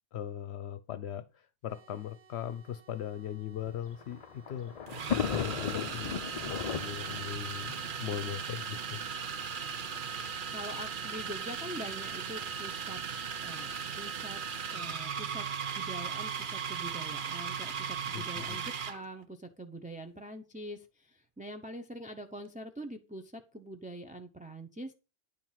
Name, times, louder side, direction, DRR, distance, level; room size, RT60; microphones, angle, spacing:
voice 1, 0.1-4.8 5.2-9.0 18.1-18.6, left 10 dB, 65° left, 0.9 m, -39 dB
sound 1, 1.7-5.9, right 4 dB, 70° right, 1.7 m, -61 dB
sound 2, 3.5-3.7 4.9-19.0, right 7 dB, 50° right, 0.9 m, -37 dB
Thunder, 3.6-9.0 9.8-9.9 10.1-10.2 11.3-11.6, left 8 dB, 50° left, 0.5 m, -36 dB
voice 2, 10.5-13.0 13.4-14.4 14.7-15.5 15.7-24.9, right 1 dB, 10° right, 0.7 m, -44 dB
10.5 x 4.6 x 7.4 m
omnidirectional pair, 1.2 m